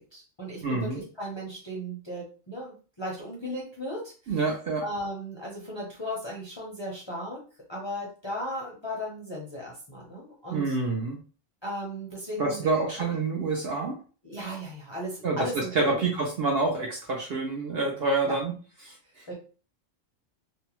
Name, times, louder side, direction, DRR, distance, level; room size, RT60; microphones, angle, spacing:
voice 1, 0.0-4.4 4.8-7.4 7.7-10.7 11.6-12.7 13.0-13.1 14.2-16.0 18.3-18.4 19.3-19.4, equal, 30° left, -4 dB, 0.5 m, -36 dB
voice 2, 0.6-1.0 4.3-4.8 10.5-11.2 12.4-14.0 15.2-18.5 18.8-19.0, right 3 dB, 60° right, 1 dB, 0.7 m, -27 dB
2.6 x 2.1 x 2.9 m, 0.38 s
omnidirectional pair, 1.3 m